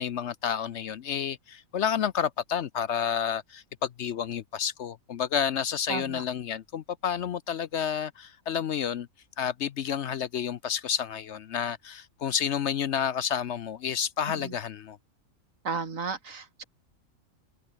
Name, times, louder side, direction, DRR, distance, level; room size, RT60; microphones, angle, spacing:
voice 1, 0.0-9.1 9.4-15.0, left 8 dB, 60° left, 0.9 m, -30 dB
voice 2, 5.9-6.2 14.3-14.5 15.6-16.6, right 5 dB, 70° right, 2.6 m, -34 dB
omnidirectional pair, 1.4 m